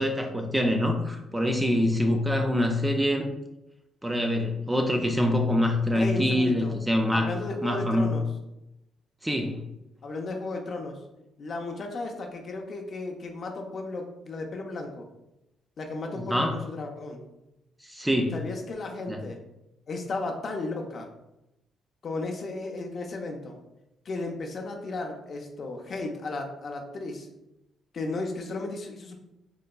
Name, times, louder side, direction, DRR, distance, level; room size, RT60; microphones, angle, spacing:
voice 1, 0.0-3.3 4.0-7.3 7.6-8.1 9.2-9.6 16.2-16.5 17.8-18.3 19.1-19.2, left 1 dB, 10° right, 3 dB, 0.4 m, -25 dB
voice 2, 5.9-6.7 7.1-8.3 10.0-11.0 11.4-15.1 15.8-17.2 18.3-19.4 19.9-21.1 22.0-23.6 24.1-27.3 27.9-29.2, left 3 dB, 50° left, 2 dB, 0.5 m, -34 dB
3.8 x 2.2 x 2.2 m, 0.90 s
cardioid pair, 90°, 0 cm